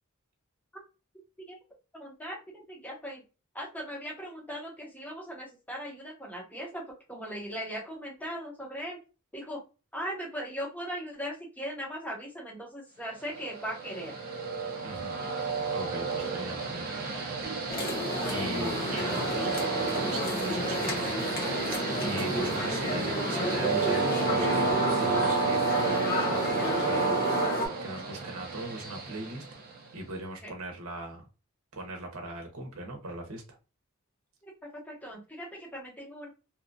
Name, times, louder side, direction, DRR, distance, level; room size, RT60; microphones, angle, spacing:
voice 1, 1.9-3.2 3.5-9.0 9.3-9.6 9.9-14.1 22.3-22.8 30.4-30.5 34.4-36.3, equal, 10° left, -2 dB, 0.8 m, -39 dB
Train, 13.3-30.0, right 4 dB, 45° right, 0.5 m, -31 dB
voice 2, 14.8-15.1 15.7-16.9 18.3-21.2 22.0-27.2 27.8-29.6 29.9-31.2 31.7-33.4, right 2 dB, 75° right, 2 dB, 0.7 m, -39 dB
sound 1, 17.7-27.7, left 1 dB, 45° left, 1.0 m, -31 dB
2.8 x 2.4 x 2.5 m, 0.31 s
head